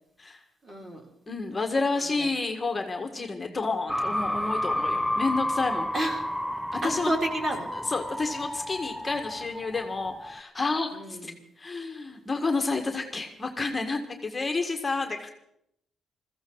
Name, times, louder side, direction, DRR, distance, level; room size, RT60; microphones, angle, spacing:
voice 1, 0.6-1.0 2.2-2.3 5.9-6.2 6.8-7.8 10.9-11.3, right 1 dB, 30° right, 3 dB, 3.5 m, -30 dB
voice 2, 1.3-5.9 6.7-7.1 7.7-15.3, left 3 dB, 25° left, 4 dB, 1.8 m, -30 dB
sound 1, 3.9-10.4, left 1 dB, 5° left, 0.6 m, -31 dB
21.5 x 15.0 x 4.1 m, 0.75 s
cardioid pair, 90°, 0 cm